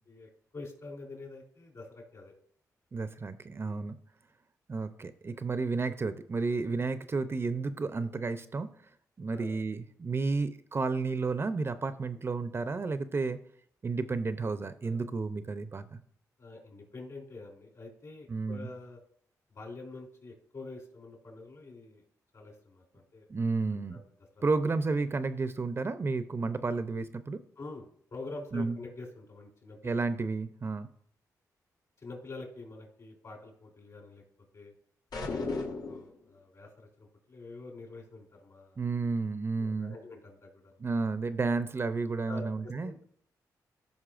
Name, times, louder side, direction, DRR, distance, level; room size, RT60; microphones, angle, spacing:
voice 1, 0.0-2.3 3.6-3.8 9.3-9.6 14.8-15.0 16.4-19.0 19.5-22.0 22.3-23.3 23.9-24.0 24.3-24.4 27.6-30.0 32.0-34.2 34.5-34.7 35.2-38.8 39.5-40.8 42.2-43.0, left 3 dB, 50° left, 1 dB, 3.2 m, -46 dB
voice 2, 2.9-4.0 4.7-8.7 9.2-13.4 13.8-16.0 18.3-18.7 23.3-24.0 24.4-27.4 28.5-28.8 29.8-30.9 38.8-40.0 40.8-42.9, right 4 dB, 35° right, 11 dB, 0.5 m, -32 dB
sound 1, 35.1-36.2, left 3 dB, 70° left, 1.4 m, -34 dB
14.5 x 5.3 x 2.5 m, 0.63 s
cardioid pair, 70°, 7 cm